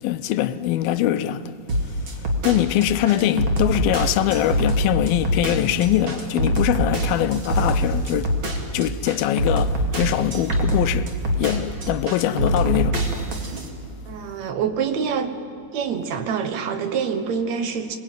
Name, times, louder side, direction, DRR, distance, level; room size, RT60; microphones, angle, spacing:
voice 1, 0.0-1.5 1.8-8.4 8.7-11.1 11.4-13.1, left 12 dB, 80° left, 2.5 m, -23 dB
sound 1, 1.7-13.7, right 1 dB, 35° right, 2.8 m, -24 dB
voice 2, 14.1-15.3 15.7-18.0, right 6 dB, 60° right, 2.1 m, -26 dB
26.5 x 21.0 x 9.2 m
omnidirectional pair, 4.3 m